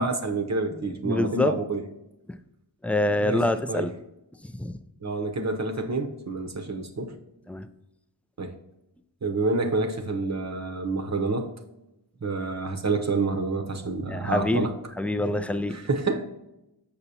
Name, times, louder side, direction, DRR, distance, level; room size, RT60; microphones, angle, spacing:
voice 1, 0.0-1.8 3.2-3.9 5.0-7.1 8.4-8.5 9.2-11.5 12.2-14.7 15.7-16.3, right 3 dB, 40° right, 3 dB, 0.8 m, -28 dB
voice 2, 0.8-1.6 2.8-3.9 4.4-4.8 7.5-7.7 14.1-14.7 15.0-15.8, left 1 dB, 5° left, 10 dB, 0.4 m, -26 dB
6.7 x 5.8 x 2.8 m, 0.89 s
cardioid pair, 45°, 44 cm